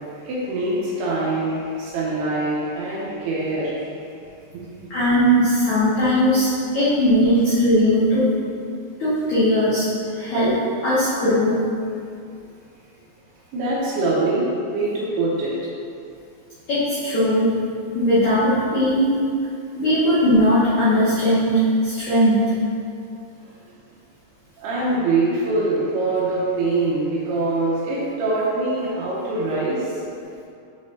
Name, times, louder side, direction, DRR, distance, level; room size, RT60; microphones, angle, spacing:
voice 1, 0.2-3.9 4.5-4.6 6.0-6.2 13.5-15.5 24.6-29.9, right 2 dB, 90° right, -6 dB, 2.3 m, -23 dB
voice 2, 4.9-8.3 9.0-10.6 10.8-11.6 16.7-17.5 17.9-19.2 19.7-22.5, equal, 85° left, -13 dB, 1.6 m, -19 dB
7.9 x 5.3 x 2.7 m, 2.4 s
omnidirectional pair, 5.8 m